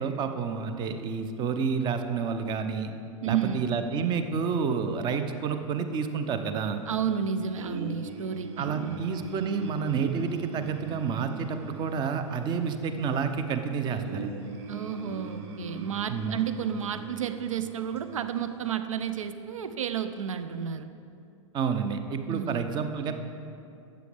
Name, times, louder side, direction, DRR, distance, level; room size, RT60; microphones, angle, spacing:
voice 1, 0.0-2.9 3.3-6.8 8.6-14.3 16.1-16.4 21.5-23.1, right 6 dB, 25° right, 8 dB, 0.6 m, -29 dB
voice 2, 3.2-3.7 6.9-9.0 14.7-20.9 22.3-22.6, right 8 dB, 75° right, 11 dB, 0.5 m, -31 dB
sound 1, 7.6-18.8, right 3 dB, 55° right, 0.9 m, -42 dB
12.5 x 7.7 x 3.4 m, 2.6 s
figure-of-eight pair, 100°, 17 cm